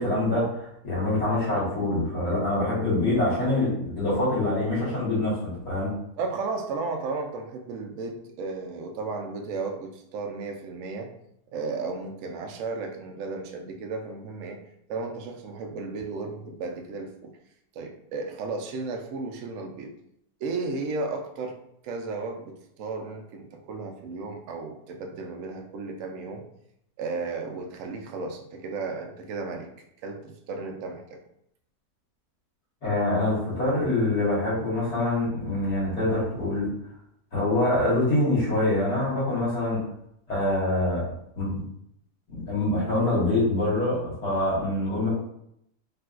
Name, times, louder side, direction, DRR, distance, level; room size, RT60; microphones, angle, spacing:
voice 1, 0.0-5.9 32.8-36.7 37.3-39.8 40.3-41.1 41.4-41.6 42.3-45.1, left 2 dB, 85° left, -8 dB, 2.0 m, -25 dB
voice 2, 6.2-11.1 11.5-14.6 14.9-17.3 17.7-19.9 20.4-21.6 21.8-26.4 27.0-29.7 30.0-31.2, right 3 dB, 70° right, 3 dB, 0.8 m, -34 dB
3.7 x 2.4 x 2.3 m, 0.75 s
omnidirectional pair, 1.6 m